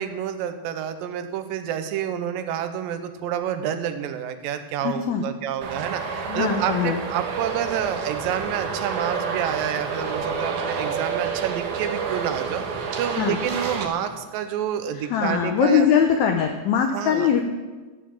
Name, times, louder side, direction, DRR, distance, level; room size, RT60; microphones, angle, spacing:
voice 1, 0.0-12.6 13.0-16.0 16.9-17.4, right 9 dB, 90° right, 9 dB, 2.6 m, -28 dB
voice 2, 4.8-5.2 6.3-7.0 13.2-13.4 14.9-17.4, left 7 dB, 70° left, 4 dB, 1.9 m, -21 dB
Traffic noise roadway noise, 5.6-13.9, right 5 dB, 70° right, 2.5 m, -29 dB
13.5 x 7.4 x 7.3 m, 1.3 s
omnidirectional pair, 3.9 m